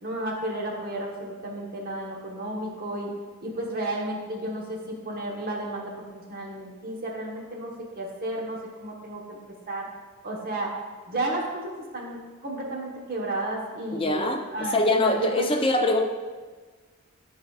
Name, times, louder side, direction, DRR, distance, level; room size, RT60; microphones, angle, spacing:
voice 1, 0.0-3.1 3.4-9.4 9.7-9.9 10.2-10.8 11.1-14.2 14.5-15.5, right 1 dB, 40° right, -1 dB, 1.2 m, -32 dB
voice 2, 13.9-14.4 14.7-16.1, left 2 dB, 25° left, 3 dB, 0.6 m, -23 dB
12.5 x 4.8 x 2.4 m, 1.4 s
head